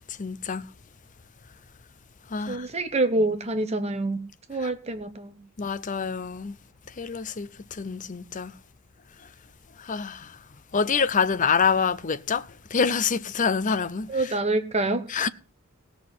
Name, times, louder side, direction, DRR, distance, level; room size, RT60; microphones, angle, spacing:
voice 1, 0.1-0.7 2.3-2.7 4.6-4.7 5.6-6.6 7.0-8.5 9.8-10.4 10.7-14.3 15.1-15.3, left 5 dB, 35° left, 0.6 m, -26 dB
voice 2, 2.5-4.2 4.5-5.4 14.1-15.0, right 2 dB, 30° right, 0.9 m, -26 dB
17.5 x 6.2 x 7.6 m
head